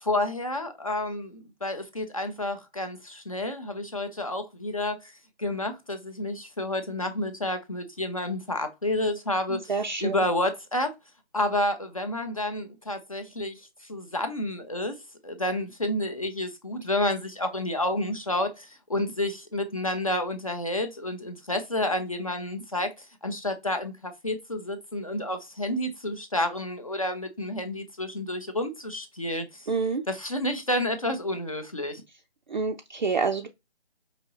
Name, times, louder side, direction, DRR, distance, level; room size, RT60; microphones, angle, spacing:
voice 1, 0.0-5.1 5.4-9.6 10.0-10.9 11.3-13.6 13.9-29.7 30.1-32.0, left 1 dB, 35° left, 0.5 m, -30 dB
voice 2, 9.5-10.2 29.7-30.0 32.5-33.5, right 4 dB, 45° right, 0.4 m, -27 dB
5.0 x 2.8 x 2.6 m
figure-of-eight pair, 160°, 32 cm